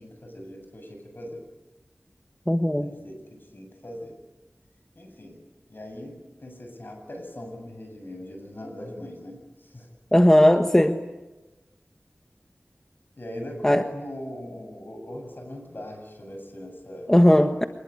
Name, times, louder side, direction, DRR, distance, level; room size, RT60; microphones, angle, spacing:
voice 1, 0.0-1.4 2.8-4.2 4.9-5.4 5.7-9.9 13.2-17.1, left 1 dB, 60° left, 4 dB, 7.7 m, -40 dB
voice 2, 2.5-2.9 10.1-11.0 13.6-13.8 17.1-17.6, left 1 dB, 15° left, 6 dB, 1.4 m, -17 dB
26.5 x 20.5 x 9.9 m, 1.1 s
wide cardioid pair, 50°, 4 cm